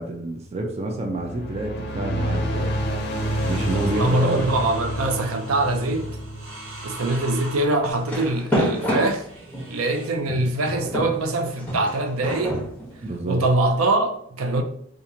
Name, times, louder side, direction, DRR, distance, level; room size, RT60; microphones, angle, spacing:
voice 1, 0.0-2.8 3.4-4.5 13.0-13.4, right 2 dB, 30° right, 0.4 m, -28 dB
sound 1, 1.0-7.6, equal, 50° left, 0.5 m, -29 dB
sound 2, 3.1-10.2 11.2-11.7, right 1 dB, 65° right, 1.2 m, -41 dB
voice 2, 4.0-6.1 6.8-9.3 9.7-12.6 13.3-14.6, right 2 dB, 85° right, 0.5 m, -23 dB
sound 3, 7.9-9.8 10.3-13.6, equal, 10° left, 1.0 m, -27 dB
2.9 x 2.5 x 3.8 m
head